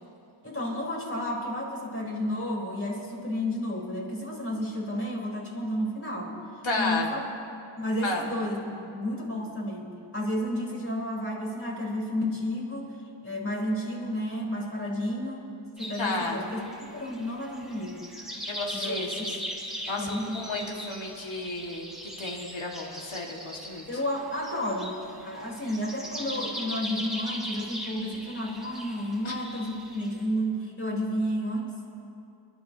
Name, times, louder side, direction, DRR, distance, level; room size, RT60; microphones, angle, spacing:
voice 1, 0.4-6.4 6.8-7.2 7.8-13.0 13.2-15.5 15.8-18.1 18.7-19.3 20.0-20.4 20.7-20.9 23.9-31.7, equal, 25° left, -4 dB, 4.3 m, -31 dB
voice 2, 6.6-7.1 8.0-8.2 16.0-16.4 18.5-19.3 19.9-21.9 22.2-23.8 29.3-29.4, left 2 dB, 70° left, -1 dB, 2.2 m, -32 dB
sound 1, 15.8-30.2, equal, ahead, 3.0 m, -39 dB
28.5 x 12.0 x 2.9 m, 2.6 s
wide cardioid pair, 70°, 48 cm